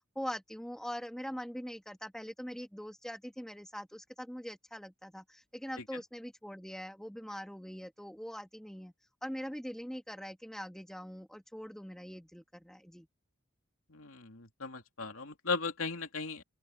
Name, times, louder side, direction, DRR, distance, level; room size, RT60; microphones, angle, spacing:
voice 1, 0.2-8.9 9.2-13.1, equal, ahead, 2.0 m, -42 dB
voice 2, 13.9-16.4, left 4 dB, 85° left, 3.1 m, -37 dB
open air
head